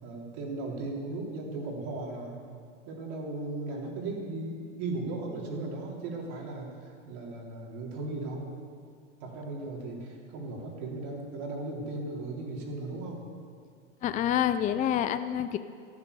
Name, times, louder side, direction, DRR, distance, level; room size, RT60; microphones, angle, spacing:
voice 1, 0.0-2.4 2.9-8.5 9.2-13.3, right 2 dB, 55° right, -1 dB, 3.9 m, -37 dB
voice 2, 14.0-15.6, left 10 dB, 20° left, 11 dB, 0.5 m, -27 dB
14.0 x 12.0 x 6.9 m, 2.2 s
hypercardioid pair, 110°, 37 cm